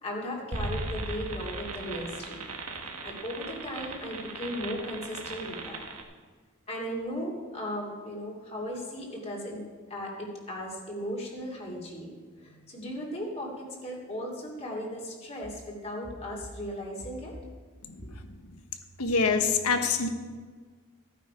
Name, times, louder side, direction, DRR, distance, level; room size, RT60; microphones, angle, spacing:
voice 1, 0.0-2.4 3.0-5.8 6.7-9.6 9.9-12.1 12.4-17.3 18.0-18.1, equal, 30° left, -2 dB, 2.6 m, -36 dB
sound 1, 0.5-6.0, right 3 dB, 80° right, 1.6 m, -37 dB
voice 2, 17.9-18.3 19.0-20.1, left 4 dB, 80° left, 7 dB, 1.2 m, -26 dB
14.5 x 9.2 x 5.1 m, 1.5 s
head